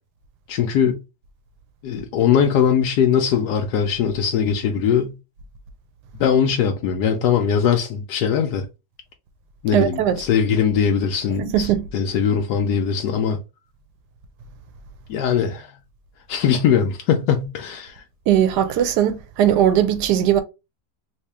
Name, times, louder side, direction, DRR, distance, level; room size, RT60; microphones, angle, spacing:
voice 1, 0.5-1.0 1.8-5.1 6.2-8.7 9.6-11.7 11.9-13.4 15.1-15.7 16.3-18.0, left 7 dB, 85° left, 1.2 m, -20 dB
voice 2, 9.7-10.2 11.4-11.8 18.3-20.4, right 10 dB, 90° right, 1.2 m, -19 dB
3.1 x 2.8 x 3.3 m
omnidirectional pair, 1.7 m